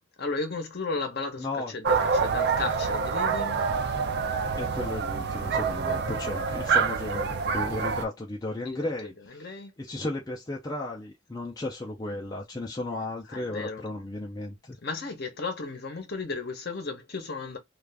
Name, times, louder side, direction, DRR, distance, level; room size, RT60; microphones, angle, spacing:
voice 1, 0.2-1.5 1.7-3.7 8.6-9.7 13.3-13.8 14.8-17.6, left 3 dB, 50° left, 0.8 m, -34 dB
voice 2, 1.4-1.7 4.6-14.8, left 2 dB, 20° left, 0.5 m, -35 dB
sound 1, 1.8-8.0, right 5 dB, 50° right, 0.4 m, -27 dB
2.4 x 2.4 x 3.3 m
head